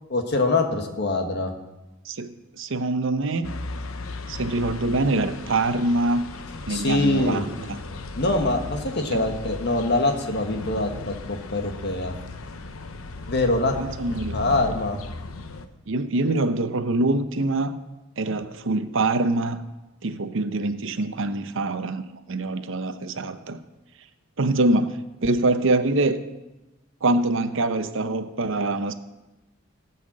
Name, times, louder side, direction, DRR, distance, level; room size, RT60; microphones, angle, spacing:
voice 1, 0.1-1.5 6.7-7.4 8.2-12.1 13.3-13.7 14.1-15.0, left 2 dB, 55° left, 4 dB, 1.7 m, -24 dB
voice 2, 2.1-3.5 4.3-6.2 6.7-7.8 9.1-9.2 13.8-14.6 15.9-17.8 18.2-19.6 20.0-23.6 24.4-24.9 25.2-26.2 27.0-28.9, right 2 dB, 65° right, 10 dB, 0.8 m, -24 dB
sound 1, 3.4-15.7, left 3 dB, 80° left, 0.9 m, -37 dB
17.0 x 5.8 x 7.5 m, 1.0 s
head